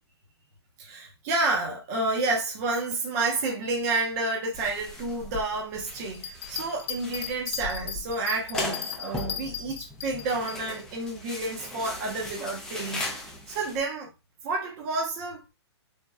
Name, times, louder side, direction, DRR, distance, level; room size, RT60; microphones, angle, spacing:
voice 1, 0.8-14.1 14.4-15.4, right 3 dB, 35° right, 0.8 m, -30 dB
sound 1, 4.5-13.8, left 2 dB, 5° left, 0.4 m, -38 dB
Bell, 6.1-10.6 11.1-11.2, left 8 dB, 65° left, 0.6 m, -36 dB
3.4 x 2.4 x 2.2 m
hypercardioid pair, 135°, 15 cm